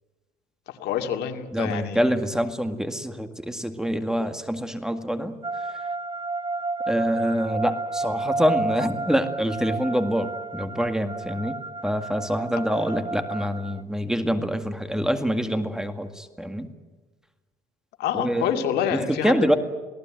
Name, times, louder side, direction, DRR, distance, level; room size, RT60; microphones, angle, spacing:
voice 1, 0.7-2.1 12.5-12.9 18.0-19.6, left 9 dB, 75° left, 5 dB, 2.6 m, -28 dB
voice 2, 1.5-5.4 6.9-11.6 11.8-16.7 18.1-18.5 18.9-19.5, equal, 5° right, 8 dB, 2.0 m, -25 dB
sound 1, 5.4-13.8, right 3 dB, 25° right, 0.8 m, -31 dB
28.0 x 18.0 x 9.2 m, 1.3 s
cardioid pair, 110°, 17 cm